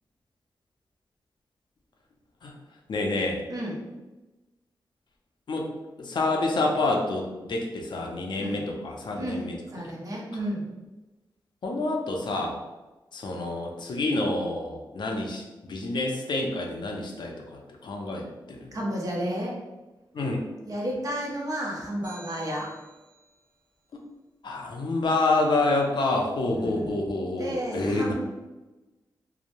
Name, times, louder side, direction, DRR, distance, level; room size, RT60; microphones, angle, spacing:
voice 1, 2.9-3.4 5.5-5.7 6.0-9.6 11.6-12.6 13.1-15.4 15.7-18.8 20.1-20.4 23.9-24.0 24.4-28.1, left 2 dB, 65° left, 1 dB, 0.5 m, -28 dB
voice 2, 3.5-3.8 8.3-8.7 9.2-10.7 18.4-19.6 20.6-22.7 26.5-28.1, equal, 45° right, -2 dB, 0.6 m, -32 dB
sound 1, 22.0-23.4, right 3 dB, 15° right, 0.9 m, -50 dB
2.9 x 2.0 x 2.5 m, 1.1 s
wide cardioid pair, 95°, 8 cm